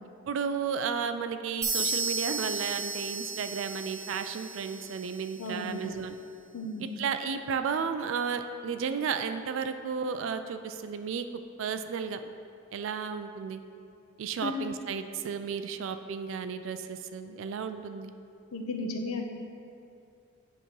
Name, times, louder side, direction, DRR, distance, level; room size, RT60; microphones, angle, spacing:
voice 1, 0.3-6.2 6.8-11.2 11.6-12.2 12.7-13.6 14.2-18.1, right 6 dB, 60° right, 9 dB, 0.3 m, -33 dB
sound 1, 1.6-5.4, right 3 dB, 15° right, 0.8 m, -34 dB
voice 2, 5.4-5.9 6.5-6.9 14.4-14.7 18.5-19.2, left 2 dB, 80° left, 3 dB, 0.7 m, -34 dB
8.5 x 2.9 x 5.3 m, 2.6 s
head